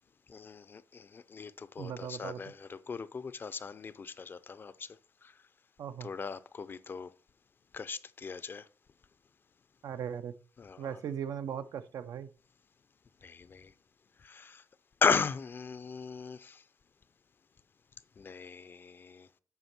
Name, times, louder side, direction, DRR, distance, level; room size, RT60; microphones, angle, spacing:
voice 1, 0.3-5.0 5.2-5.3 6.0-7.1 7.7-8.7 10.6-11.0 13.2-13.7 14.2-14.6 15.0-16.6 18.2-19.3, left 5 dB, 35° left, 0.4 m, -36 dB
voice 2, 1.8-2.4 5.8-6.1 9.8-10.3 10.8-12.3, right 8 dB, 85° right, 0.5 m, -38 dB
8.1 x 5.1 x 5.8 m
wide cardioid pair, 150°, 6 cm